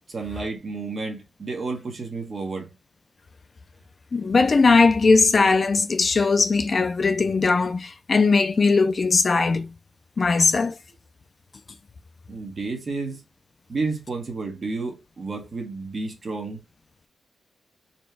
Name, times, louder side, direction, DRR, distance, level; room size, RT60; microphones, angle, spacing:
voice 1, 0.1-2.7 12.3-13.2 13.7-16.6, right 3 dB, 40° right, 1.0 m, -31 dB
voice 2, 4.1-9.7 10.2-10.8, left 4 dB, 35° left, 0.3 m, -19 dB
4.1 x 2.2 x 3.2 m
wide cardioid pair, 155°, 0 cm